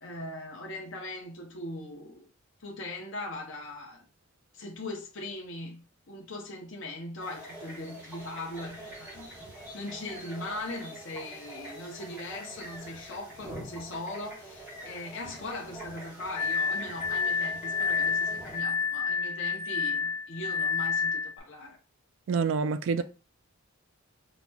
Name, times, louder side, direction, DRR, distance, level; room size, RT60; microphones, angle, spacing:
voice 1, 0.0-2.2 2.6-4.0 4.5-9.4 9.7-21.8, left 2 dB, 60° left, 0.7 m, -40 dB
sound 1, 7.2-18.6, right 1 dB, 10° right, 1.0 m, -45 dB
Glass, 16.3-21.4, left 5 dB, 25° left, 0.4 m, -29 dB
voice 2, 22.3-23.0, right 5 dB, 60° right, 0.3 m, -27 dB
4.0 x 2.9 x 2.2 m
head